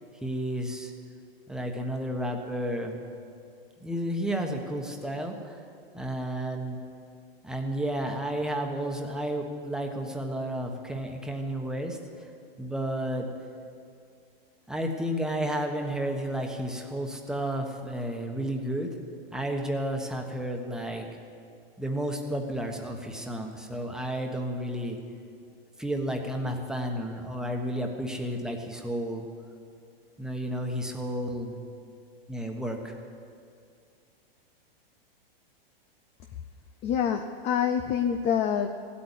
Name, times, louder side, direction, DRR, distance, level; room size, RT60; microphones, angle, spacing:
voice 1, 0.2-0.9 1.5-3.0 3.8-5.6 5.9-6.8 7.4-12.3 12.6-13.3 14.7-18.9 19.3-21.1 21.8-25.0 25.8-29.3 30.2-31.6 32.3-32.9, right 1 dB, ahead, 2 dB, 1.2 m, -32 dB
voice 2, 36.8-38.7, left 8 dB, 20° left, 8 dB, 0.5 m, -26 dB
16.0 x 8.5 x 9.9 m, 2.4 s
hypercardioid pair, 145°, 30 cm